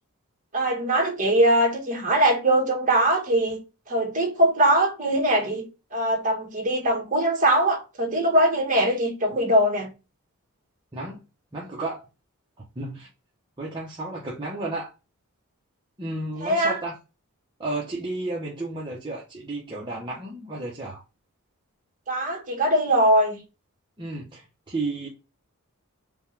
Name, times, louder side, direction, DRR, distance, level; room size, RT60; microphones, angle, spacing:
voice 1, 0.5-3.6 3.9-5.6 5.9-9.9 16.4-16.8 22.1-23.4, right 1 dB, 35° right, 1.4 m, -21 dB
voice 2, 11.5-12.1 12.8-13.1 13.6-14.9 16.0-17.0 17.6-21.0 24.0-25.1, right 2 dB, 20° right, 0.8 m, -32 dB
5.2 x 2.3 x 3.3 m
head